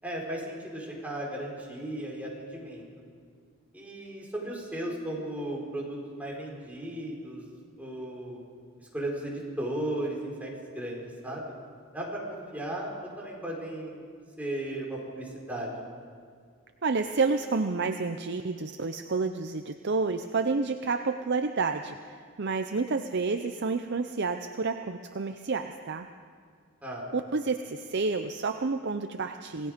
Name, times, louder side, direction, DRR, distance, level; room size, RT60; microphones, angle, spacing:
voice 1, 0.0-2.8 3.7-7.4 7.8-8.4 8.8-11.5 11.9-14.0 14.4-15.9 26.8-27.1, right 1 dB, 5° right, -3 dB, 5.0 m, -36 dB
voice 2, 16.8-26.1 27.1-29.7, right 4 dB, 55° right, 7 dB, 0.7 m, -29 dB
27.0 x 18.5 x 5.2 m, 2.1 s
head